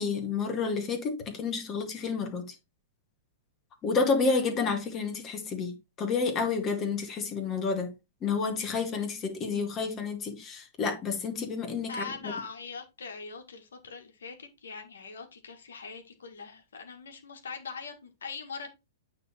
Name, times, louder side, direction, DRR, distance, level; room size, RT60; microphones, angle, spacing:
voice 1, 0.0-2.6 3.8-7.9 8.2-12.1, left 4 dB, 30° left, 2.0 m, -30 dB
voice 2, 11.9-18.7, left 4 dB, 75° left, 1.9 m, -41 dB
9.0 x 3.9 x 4.3 m
figure-of-eight pair, 105°, 0 cm